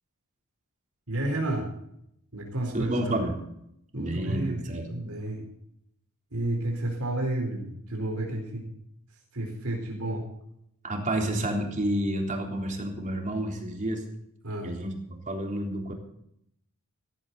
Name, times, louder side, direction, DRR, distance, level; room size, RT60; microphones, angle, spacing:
voice 1, 1.1-1.7 2.3-3.2 3.9-5.5 6.3-8.6 9.3-10.2 14.4-14.7, right 1 dB, 80° right, -1 dB, 4.4 m, -31 dB
voice 2, 2.7-3.4 3.9-4.9 10.8-14.0 14.6-15.9, right 1 dB, 35° right, 1 dB, 3.7 m, -30 dB
16.5 x 15.5 x 4.1 m, 0.75 s
head